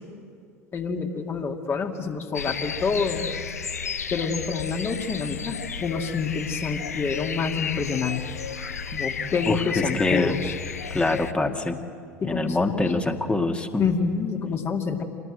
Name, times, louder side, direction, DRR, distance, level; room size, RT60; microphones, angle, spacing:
voice 1, 0.7-3.3 4.1-8.2 8.9-10.5 12.2-12.8 13.8-15.0, left 5 dB, 30° left, 3 dB, 2.3 m, -27 dB
sound 1, 2.3-11.3, left 6 dB, 80° left, 0.6 m, -32 dB
voice 2, 9.5-10.4 10.9-11.8 12.2-13.9, left 2 dB, 15° left, 5 dB, 1.8 m, -25 dB
27.0 x 19.0 x 7.9 m, 2.3 s
figure-of-eight pair, 70°, 8 cm